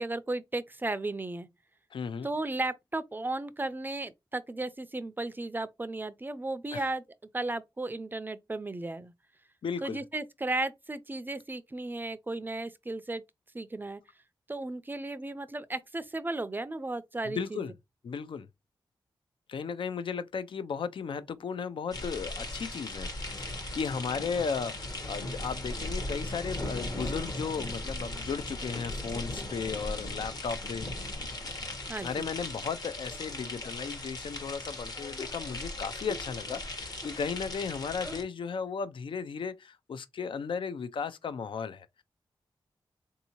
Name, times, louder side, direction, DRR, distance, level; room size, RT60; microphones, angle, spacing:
voice 1, 0.0-1.5 2.2-7.0 7.3-9.1 9.8-13.2 13.5-14.0 14.5-17.6 31.9-32.3, right 2 dB, 20° right, 0.4 m, -35 dB
voice 2, 1.9-2.3 6.7-6.8 9.6-10.0 17.2-17.7 18.0-18.5 19.5-31.1 32.0-42.0, left 6 dB, 70° left, 0.5 m, -35 dB
sound 1, 21.9-38.2, left 1 dB, 50° left, 1.1 m, -38 dB
3.6 x 2.7 x 2.8 m
cardioid pair, 65°, 9 cm